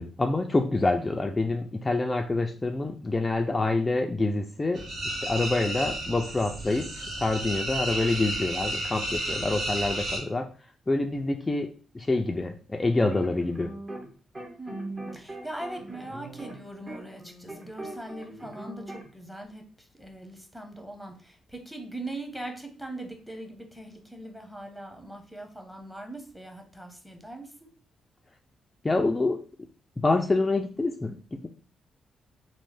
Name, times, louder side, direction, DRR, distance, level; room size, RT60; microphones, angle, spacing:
voice 1, 0.0-10.5 10.9-11.7 11.9-13.7 28.8-29.4 30.0-31.2, left 2 dB, 25° left, 3 dB, 0.3 m, -27 dB
sound 1, 4.7-10.2, right 1 dB, 70° right, 1.3 m, -32 dB
sound 2, 12.9-14.1 14.4-19.1, right 2 dB, 35° right, 0.9 m, -41 dB
voice 2, 14.6-27.7, right 1 dB, 5° right, 3 dB, 0.9 m, -41 dB
3.1 x 2.1 x 3.3 m, 0.40 s
supercardioid pair, 55°, 0 cm